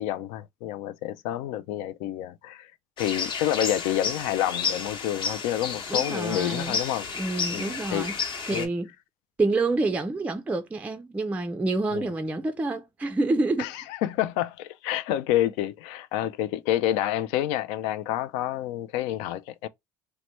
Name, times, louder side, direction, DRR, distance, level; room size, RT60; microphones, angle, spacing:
voice 1, 0.0-2.7 3.0-7.1 7.5-8.1 8.5-8.7 11.9-12.1 13.6-19.7, left 12 dB, 65° left, 0.4 m, -28 dB
sound 1, 3.0-8.7, left 5 dB, 45° left, 0.9 m, -31 dB
voice 2, 5.9-6.8 7.2-8.2 8.5-8.9 9.4-13.7, right 2 dB, 10° right, 0.4 m, -27 dB
2.8 x 2.2 x 3.0 m
hypercardioid pair, 80°, 12 cm